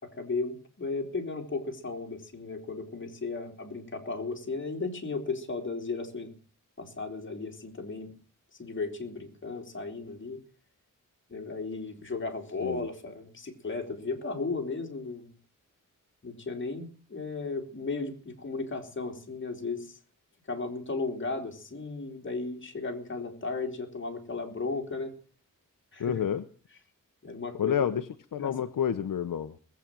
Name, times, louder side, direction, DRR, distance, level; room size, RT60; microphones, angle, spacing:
voice 1, 0.0-6.3 6.8-8.1 8.6-10.4 11.3-15.3 16.2-20.0 20.5-25.1 25.9-26.2 27.2-27.9 28.4-28.5, left 3 dB, 35° left, 4 dB, 3.5 m, -35 dB
voice 2, 26.0-26.4 27.6-28.0 28.3-29.5, left 8 dB, 75° left, 9 dB, 0.9 m, -29 dB
19.5 x 8.6 x 7.6 m, 0.42 s
wide cardioid pair, 160°, 33 cm